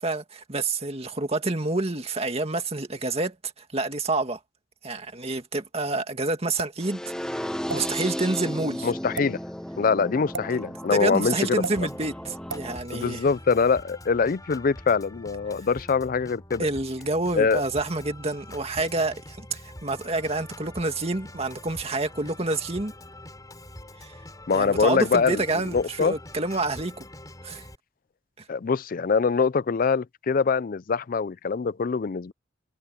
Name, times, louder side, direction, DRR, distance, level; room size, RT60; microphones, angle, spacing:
voice 1, 0.0-4.4 4.8-7.0 7.3-8.9 10.9-13.2 16.6-22.9 24.0-24.1 24.5-27.0 27.4-27.6, right 2 dB, 30° right, 2.2 m, -28 dB
sound 1, 6.6-6.8 7.7-7.8 9.0-9.3 10.3-10.5 11.6-11.8 12.5-12.7, right 3 dB, 80° right, 7.3 m, -33 dB
sound 2, 6.8-12.8, equal, 5° left, 0.9 m, -34 dB
voice 2, 8.8-9.4 9.8-11.9 12.9-16.7 17.3-17.6 24.5-25.4 25.7-26.2 28.5-32.3, left 5 dB, 45° left, 0.4 m, -24 dB
Organ, 11.8-27.8, left 1 dB, 20° left, 6.9 m, -44 dB
head